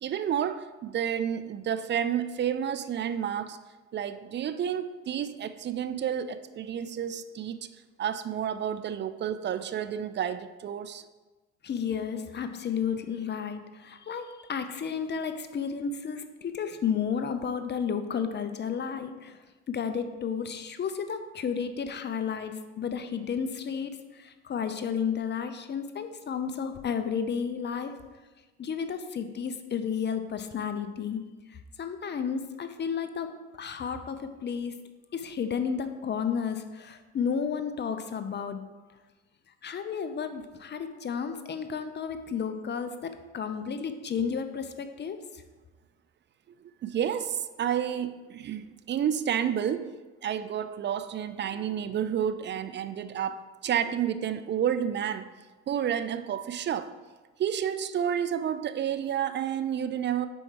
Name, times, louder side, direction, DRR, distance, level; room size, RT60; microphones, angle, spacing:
voice 1, 0.0-3.6 3.9-7.7 8.0-11.0 46.6-55.3 55.7-56.9 57.4-60.3, right 9 dB, 35° right, 0.4 m, -30 dB
voice 2, 11.6-19.4 19.7-27.9 28.6-33.3 33.6-34.8 35.1-38.7 39.6-45.4, left 7 dB, 35° left, 0.6 m, -32 dB
5.3 x 4.6 x 4.6 m
supercardioid pair, 80°, 32 cm